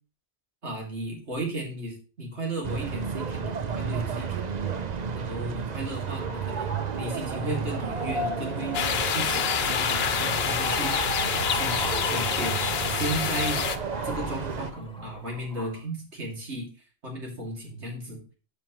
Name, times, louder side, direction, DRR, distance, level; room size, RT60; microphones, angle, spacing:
voice 1, 0.6-4.6 5.1-6.7 7.0-8.8 9.1-11.0 11.3-13.6 14.0-16.7 17.0-18.2, right 1 dB, 80° right, -1 dB, 3.0 m, -35 dB
sound 1, 2.6-14.7, right 6 dB, 45° right, 0.7 m, -32 dB
sound 2, 6.1-15.8, left 1 dB, 5° left, 1.5 m, -37 dB
sound 3, 8.7-13.8, left 7 dB, 65° left, 1.0 m, -27 dB
13.0 x 5.2 x 3.1 m, 0.37 s
omnidirectional pair, 1.1 m